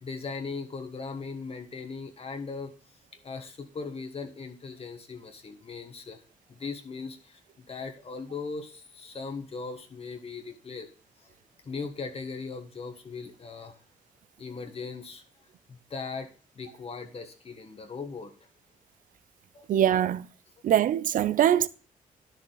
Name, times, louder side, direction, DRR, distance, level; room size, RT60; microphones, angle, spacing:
voice 1, 0.0-2.7 3.2-6.2 6.6-7.4 7.7-10.9 11.6-13.8 14.4-15.2 15.7-16.3 16.6-18.3 19.5-19.6, left 4 dB, 45° left, 1.5 m, -38 dB
voice 2, 19.7-20.3 20.6-21.7, right 10 dB, 70° right, 0.5 m, -22 dB
10.5 x 6.8 x 3.9 m
cardioid pair, 70°, 14 cm